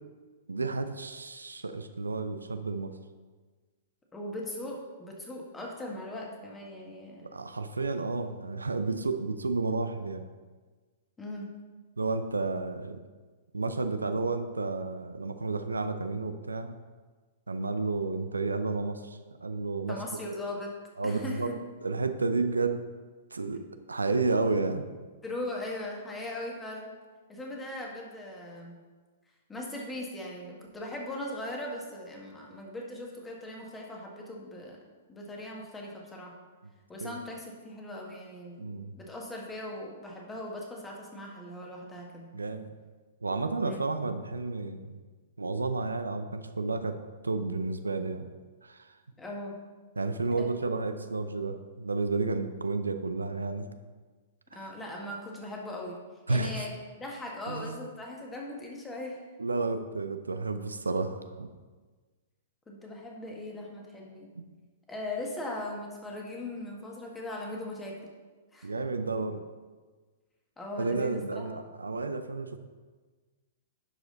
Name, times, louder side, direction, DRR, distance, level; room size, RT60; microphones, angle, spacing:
voice 1, 0.5-2.9 7.2-10.3 12.0-13.0 13.5-16.8 17.5-20.0 20.2-20.3 21.0-21.5 21.8-22.8 23.3-24.8 37.0-37.2 38.6-38.9 42.3-42.7 43.2-45.0 45.4-47.0 47.2-48.3 48.6-48.8 50.0-53.7 54.5-54.6 56.3-56.6 57.5-57.8 59.4-61.5 68.6-69.4 70.8-72.6, right 3 dB, 90° right, 8 dB, 0.5 m, -31 dB
voice 2, 4.1-7.3 11.2-11.5 19.9-20.7 21.0-21.6 25.2-26.9 27.3-28.8 29.5-34.8 35.1-36.3 36.9-38.7 39.0-42.3 43.6-43.8 49.2-49.6 50.4-50.5 54.5-56.0 56.3-59.2 62.7-64.3 64.9-68.0 68.5-68.7 70.6-71.5, left 1 dB, 15° left, -1 dB, 1.7 m, -39 dB
11.0 x 4.9 x 3.9 m, 1.4 s
hypercardioid pair, 115°, 0 cm